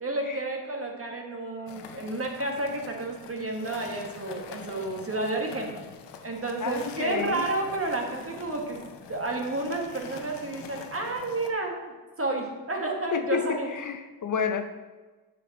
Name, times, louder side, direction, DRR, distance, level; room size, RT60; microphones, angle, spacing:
voice 1, 0.0-5.7 6.2-8.8 9.1-11.7 12.2-13.7, right 2 dB, 35° right, 2 dB, 1.6 m, -31 dB
sound 1, 1.7-11.5, left 6 dB, 90° left, 0.7 m, -45 dB
voice 2, 6.6-7.4 13.1-14.6, left 7 dB, 50° left, 8 dB, 0.6 m, -30 dB
7.0 x 6.1 x 4.1 m, 1.3 s
cardioid pair, 60°, 41 cm